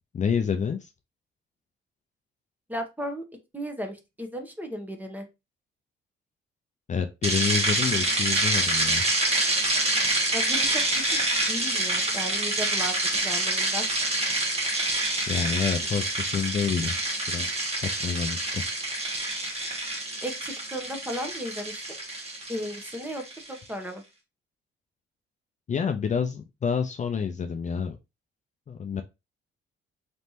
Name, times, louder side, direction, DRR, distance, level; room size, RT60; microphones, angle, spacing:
voice 1, 0.1-0.9 6.9-9.0 15.3-17.0 17.3-18.6 25.7-28.0 28.7-29.0, left 6 dB, 40° left, 6 dB, 0.6 m, -28 dB
voice 2, 2.7-3.2 3.5-5.3 10.3-10.8 11.1-11.2 11.5-13.9 20.2-21.8 22.5-23.2 23.5-24.0, equal, 10° right, 4 dB, 1.1 m, -35 dB
sound 1, 7.2-23.5, right 2 dB, 30° right, 1.5 m, -27 dB
4.3 x 3.3 x 2.8 m, 0.24 s
cardioid pair, 90°, 20 cm